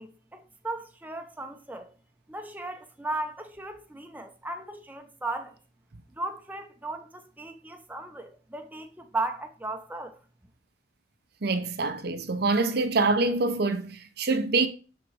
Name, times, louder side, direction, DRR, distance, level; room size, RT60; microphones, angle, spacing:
voice 1, 0.0-1.9 2.3-5.5 6.2-10.2, right 2 dB, 10° right, 0.9 m, -36 dB
voice 2, 11.4-14.7, right 3 dB, 55° right, 0.8 m, -25 dB
12.0 x 4.1 x 4.8 m
head